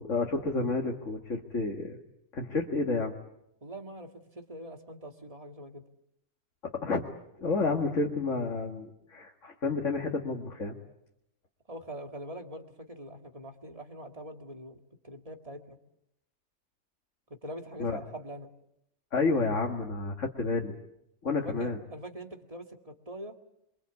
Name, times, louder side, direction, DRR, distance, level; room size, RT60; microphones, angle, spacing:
voice 1, 0.0-2.0 2.3-3.1 6.6-7.0 7.4-10.7 17.8-18.0 19.1-20.7 21.2-21.8, left 3 dB, 65° left, 1 dB, 2.3 m, -30 dB
voice 2, 3.6-5.8 11.7-14.8 15.0-15.8 17.3-18.5 21.3-23.4, equal, 25° right, 5 dB, 2.2 m, -43 dB
27.0 x 24.5 x 8.3 m, 0.81 s
omnidirectional pair, 1.4 m